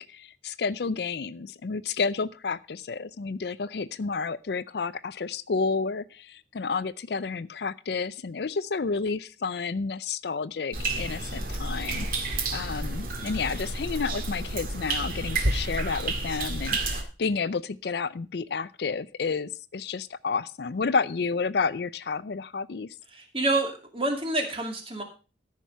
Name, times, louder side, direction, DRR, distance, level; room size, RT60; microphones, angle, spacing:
voice 1, 0.0-22.9, left 4 dB, 60° left, 16 dB, 0.5 m, -30 dB
sound 1, 10.7-17.0, right 2 dB, 50° right, 2.0 m, -30 dB
voice 2, 23.1-25.0, right 2 dB, 30° right, 3 dB, 2.3 m, -28 dB
14.0 x 5.9 x 5.5 m, 0.34 s
head